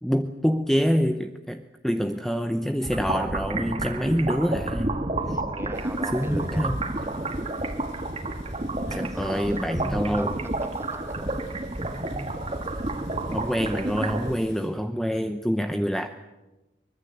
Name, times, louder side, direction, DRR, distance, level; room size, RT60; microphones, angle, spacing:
voice 1, 0.0-5.0 5.3-5.4 6.1-6.8 8.9-10.3 13.3-16.1, equal, ahead, 7 dB, 0.8 m, -26 dB
sound 1, 2.8-14.3, right 2 dB, 35° right, 2.0 m, -30 dB
voice 2, 5.2-6.9 8.9-9.7 10.2-10.3 10.6-11.5, right 1 dB, 15° right, 10 dB, 1.2 m, -40 dB
sound 2, 5.7-14.7, left 2 dB, 85° left, 8.0 m, -53 dB
23.5 x 21.5 x 8.0 m, 1.0 s
head